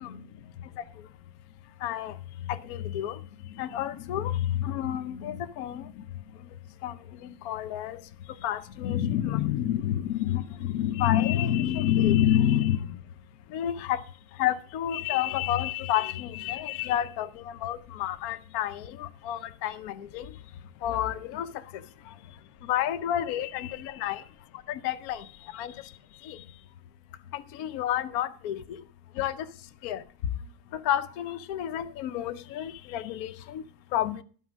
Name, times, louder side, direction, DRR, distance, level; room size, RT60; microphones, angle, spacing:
voice 1, 1.8-2.1 2.5-3.2 3.6-5.8 6.8-7.0 7.2-8.0 8.4-12.8 13.5-14.0 14.4-20.2 20.8-21.5 22.7-24.2 24.7-25.2 25.5-25.7 26.3-26.4 27.3-28.6 29.2-29.4 29.8-30.0 30.7-33.6 33.9-34.2, left 11 dB, 65° left, 1.1 m, -29 dB
12.5 x 5.6 x 6.1 m
omnidirectional pair, 1.8 m